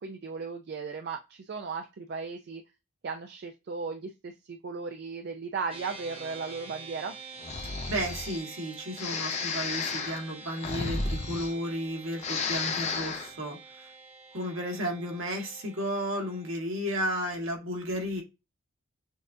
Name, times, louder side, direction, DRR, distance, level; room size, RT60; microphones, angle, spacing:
voice 1, 0.0-2.6 3.0-7.2, right 4 dB, 50° right, 0.4 m, -36 dB
sound 1, 5.7-16.5, right 5 dB, 25° right, 0.9 m, -47 dB
Breathing, 7.4-8.4 9.0-11.9 12.1-13.3, left 4 dB, 30° left, 0.5 m, -33 dB
voice 2, 7.9-13.9 14.3-18.2, equal, 70° right, 1.5 m, -33 dB
6.2 x 2.5 x 2.6 m
head